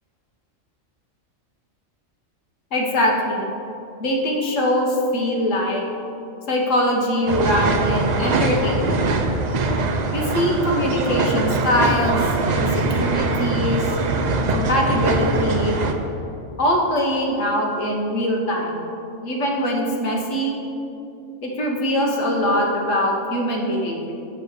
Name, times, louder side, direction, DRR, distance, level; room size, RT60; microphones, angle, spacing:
voice 1, 2.7-3.5 4.0-5.8 6.5-9.0 10.1-12.2 12.6-13.9 14.5-15.8 16.6-18.9 19.2-20.5 21.4-24.1, equal, 65° left, 0 dB, 1.5 m, -22 dB
sound 1, 7.3-15.9, right 3 dB, 70° right, 0.4 m, -22 dB
6.7 x 5.1 x 6.5 m, 2.7 s
omnidirectional pair, 1.4 m